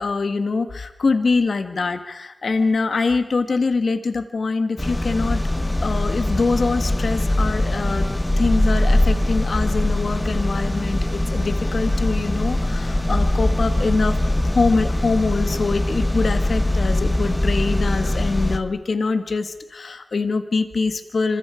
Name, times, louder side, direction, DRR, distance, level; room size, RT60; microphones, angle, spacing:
voice 1, 0.0-5.4 5.8-8.1 8.4-14.2 14.4-21.4, left 4 dB, 85° left, 8 dB, 1.4 m, -24 dB
sound 1, 4.8-18.6, left 1 dB, 20° left, 1.6 m, -22 dB
27.0 x 25.5 x 5.0 m, 0.99 s
cardioid pair, 50°, 0 cm